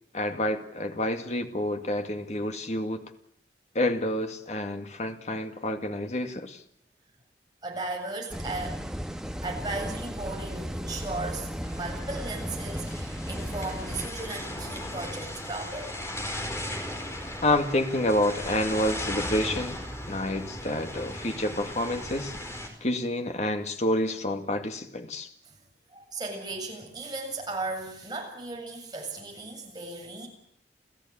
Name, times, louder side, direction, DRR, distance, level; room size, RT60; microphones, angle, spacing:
voice 1, 0.1-3.1 3.7-6.6 17.4-19.8 20.0-22.4 22.8-25.3, left 1 dB, 40° left, 6 dB, 2.1 m, -28 dB
voice 2, 7.6-8.8 9.4-15.9 16.3-16.4 25.4-25.6 25.9-30.3, right 2 dB, 25° right, 1 dB, 7.6 m, -36 dB
sound 1, 8.3-14.1, equal, 5° right, 1.3 m, -35 dB
sound 2, 11.6-22.7, left 1 dB, 15° left, 4.5 m, -37 dB
29.5 x 15.5 x 8.9 m, 0.71 s
head